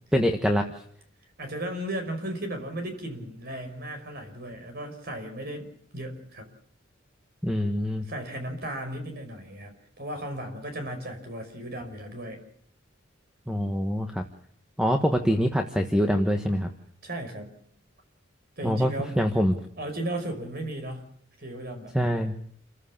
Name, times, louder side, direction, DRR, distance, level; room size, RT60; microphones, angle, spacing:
voice 1, 0.1-0.6 7.4-8.0 13.5-14.2 14.8-16.7 18.6-19.6 21.9-22.3, equal, 5° right, 4 dB, 1.3 m, -24 dB
voice 2, 1.4-5.7 5.9-6.5 8.0-12.4 17.0-17.6 18.6-19.1 19.8-21.1 21.4-21.9, right 1 dB, 50° right, 6 dB, 5.4 m, -35 dB
28.5 x 15.0 x 7.4 m, 0.66 s
head